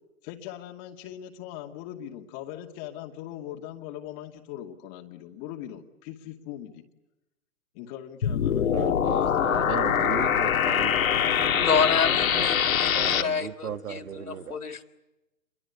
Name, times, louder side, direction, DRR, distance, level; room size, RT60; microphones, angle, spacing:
voice 1, 0.2-6.8 7.7-9.5, left 11 dB, 30° left, 2.5 m, -40 dB
sound 1, 8.2-13.2, left 8 dB, 70° left, 2.4 m, -23 dB
voice 2, 8.7-12.5 12.9-14.6, right 7 dB, 75° right, 1.8 m, -36 dB
voice 3, 11.6-14.8, left 6 dB, 90° left, 4.0 m, -28 dB
28.5 x 23.0 x 8.4 m
hypercardioid pair, 140°, 44 cm